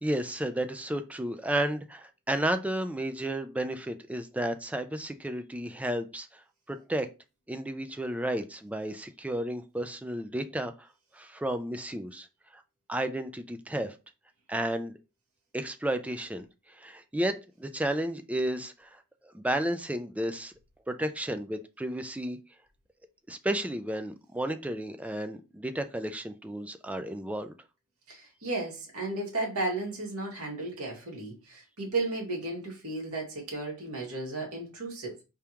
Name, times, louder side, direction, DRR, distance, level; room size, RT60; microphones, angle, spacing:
voice 1, 0.0-6.4 6.7-7.1 7.5-10.9 11.1-12.3 12.5-12.6 12.9-14.0 14.5-14.9 15.5-20.5 20.9-22.4 23.3-27.5, right 1 dB, 5° right, 0.4 m, -32 dB
voice 2, 28.1-35.1, right 2 dB, 75° right, 1.9 m, -34 dB
4.7 x 3.5 x 2.9 m
head